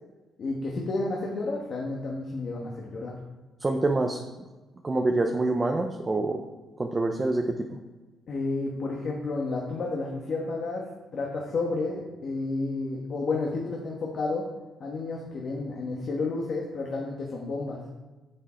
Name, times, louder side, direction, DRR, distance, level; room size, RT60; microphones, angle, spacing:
voice 1, 0.4-3.1 8.3-10.8 11.1-14.5 14.8-17.8, left 3 dB, 55° left, -2 dB, 1.6 m, -31 dB
voice 2, 3.6-4.2 4.8-6.4 6.8-7.7, right 2 dB, 25° right, 3 dB, 0.8 m, -26 dB
8.6 x 7.3 x 4.5 m, 1.2 s
cardioid pair, 90°, 0 cm